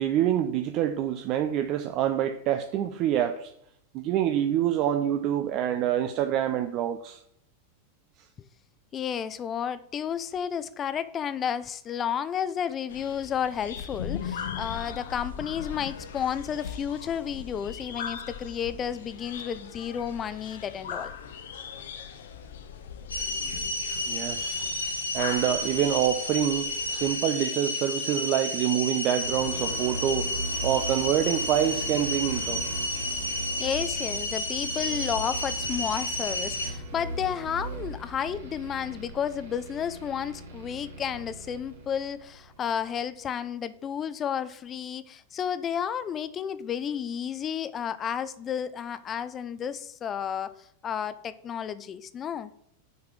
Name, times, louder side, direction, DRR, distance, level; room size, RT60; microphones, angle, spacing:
voice 1, 0.0-3.5 3.9-7.2 24.1-24.6 25.1-30.3 30.6-32.7, right 10 dB, 40° right, 7 dB, 0.5 m, -26 dB
voice 2, 8.9-21.1 33.6-50.5 50.8-52.5, left 8 dB, 25° left, 15 dB, 0.4 m, -32 dB
sound 1, 12.9-27.2, left 7 dB, 60° left, 0.8 m, -39 dB
sound 2, 23.1-36.7, left 1 dB, 80° left, 1.4 m, -31 dB
sound 3, 29.1-42.9, right 2 dB, 65° right, 1.5 m, -38 dB
6.8 x 4.8 x 6.2 m, 0.72 s
figure-of-eight pair, 90°, 0 cm